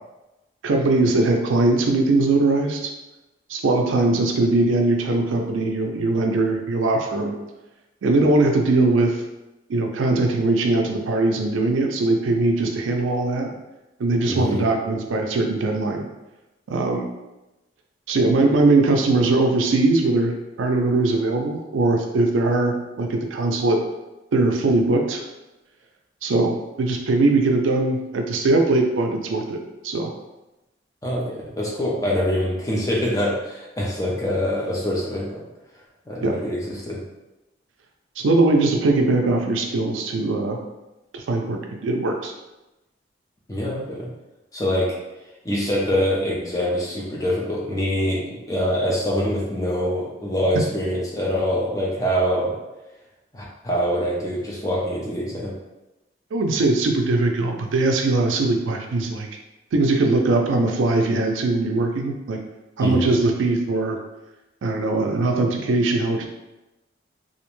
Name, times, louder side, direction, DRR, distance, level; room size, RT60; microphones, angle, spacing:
voice 1, 0.6-2.9 3.5-7.3 8.0-9.2 9.7-13.6 14.0-16.1 16.7-17.0 18.1-23.8 24.3-25.2 26.2-29.6 29.8-30.1 36.2-36.3 38.2-40.6 41.1-42.3 50.5-50.6 56.3-59.3 59.7-62.4 62.8-64.0 64.6-66.3, right 2 dB, 90° right, 2 dB, 0.4 m, -21 dB
voice 2, 14.3-14.6 31.0-35.4 36.1-37.0 43.5-44.1 44.5-45.0 45.4-48.2 48.5-52.5 53.3-55.5 62.8-63.1, equal, 15° left, -4 dB, 0.4 m, -24 dB
2.5 x 2.1 x 3.0 m, 1.0 s
head